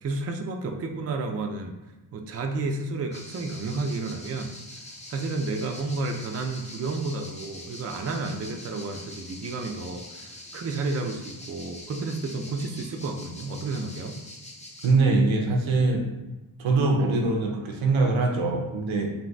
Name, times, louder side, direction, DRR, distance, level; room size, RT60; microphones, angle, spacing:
voice 1, 0.0-1.8 2.1-4.5 5.1-14.2, right 3 dB, 35° right, 3 dB, 0.4 m, -31 dB
sound 1, 3.1-14.9, left 1 dB, 15° left, 0.6 m, -44 dB
voice 2, 14.8-16.1 16.6-19.1, right 3 dB, 80° right, 2 dB, 0.6 m, -23 dB
3.8 x 2.3 x 2.2 m, 1.1 s
cardioid pair, 45°, 47 cm